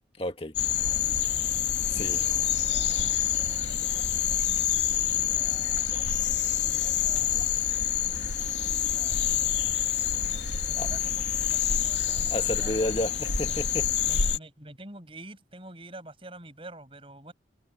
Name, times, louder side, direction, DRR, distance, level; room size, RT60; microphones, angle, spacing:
voice 1, 0.2-0.6 1.9-2.2 10.8-10.9 12.3-13.9, left 1 dB, 30° left, 2.0 m, -31 dB
sound 1, 0.5-14.4, left 9 dB, 85° left, 2.5 m, -27 dB
voice 2, 0.8-1.3 1.7-6.0 6.5-7.7 8.8-13.1 13.4-13.6 14.0-17.3, right 1 dB, 30° right, 6.7 m, -49 dB
head